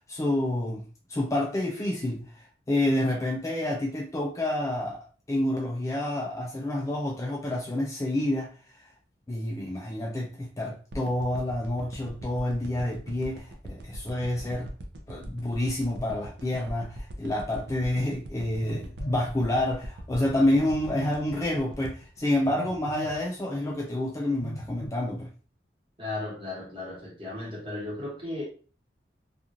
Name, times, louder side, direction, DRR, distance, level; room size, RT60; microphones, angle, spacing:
voice 1, 0.1-0.8 1.1-8.5 9.3-14.7 15.1-25.3, left 1 dB, 15° left, 0.3 m, -28 dB
sound 1, 10.9-23.2 23.7-23.8, equal, 70° right, 0.5 m, -40 dB
Telephone, 18.6-19.3 20.5-21.2 22.5-23.2 24.4-24.9, equal, 60° left, 0.6 m, -39 dB
voice 2, 26.0-28.4, left 2 dB, 30° right, 1.1 m, -35 dB
2.9 x 2.4 x 2.4 m
head